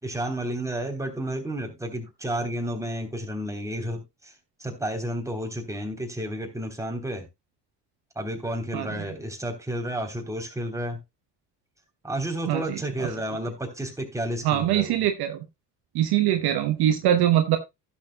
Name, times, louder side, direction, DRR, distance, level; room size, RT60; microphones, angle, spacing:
voice 1, 0.0-4.3 4.6-7.3 8.1-11.0 12.0-15.0, right 1 dB, 5° right, 3.4 m, -31 dB
voice 2, 8.7-9.0 12.5-13.1 14.4-15.4 15.9-17.6, right 11 dB, 55° right, 1.0 m, -23 dB
16.0 x 7.1 x 2.2 m
figure-of-eight pair, 55°, 47 cm